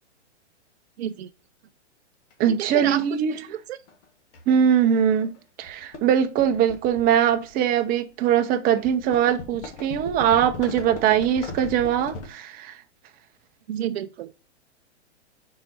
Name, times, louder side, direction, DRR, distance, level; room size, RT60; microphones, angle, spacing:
voice 1, 1.0-1.3 2.6-3.8 13.7-14.3, right 11 dB, 65° right, 0.5 m, -31 dB
sound 1, 2.3-2.4 3.9-4.0 4.3-4.6 5.2-5.4 5.6-7.8 8.8-12.3, left 4 dB, 50° left, 1.7 m, -38 dB
voice 2, 2.4-3.4 4.5-12.7, right 9 dB, 25° right, 0.7 m, -21 dB
5.6 x 4.7 x 4.1 m
hypercardioid pair, 125°, 35 cm